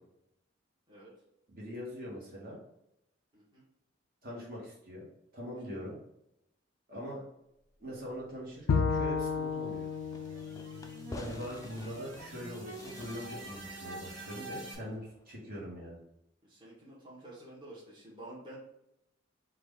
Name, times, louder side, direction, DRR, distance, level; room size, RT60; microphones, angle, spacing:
voice 1, 1.5-2.6 4.2-5.1 5.3-6.0 6.9-7.2 7.8-9.9 11.1-16.0, equal, 45° right, -5 dB, 1.4 m, -42 dB
sound 1, 8.4-14.8, right 1 dB, 70° right, 1.4 m, -47 dB
Bowed string instrument, 8.7-12.0, left 5 dB, 90° left, 0.4 m, -33 dB
Fireworks, 10.1-15.3, left 2 dB, 15° left, 0.4 m, -50 dB
voice 2, 16.4-18.6, right 1 dB, 25° right, -7 dB, 1.3 m, -50 dB
4.8 x 2.5 x 3.7 m, 0.82 s
head